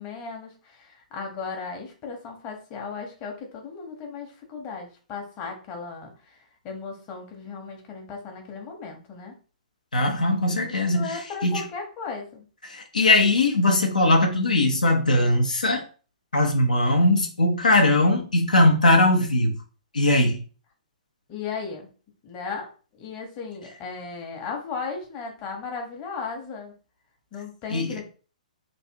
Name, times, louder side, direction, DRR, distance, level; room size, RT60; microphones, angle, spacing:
voice 1, 0.0-9.3 10.5-12.4 21.3-21.9 22.2-22.7 23.0-26.7 27.3-28.0, left 5 dB, 30° left, 1.1 m, -36 dB
voice 2, 9.9-11.6 12.7-15.8 16.3-19.6 19.9-20.4 27.7-28.0, left 2 dB, 80° left, 0.9 m, -20 dB
3.2 x 2.7 x 4.5 m
figure-of-eight pair, 120°, 4 cm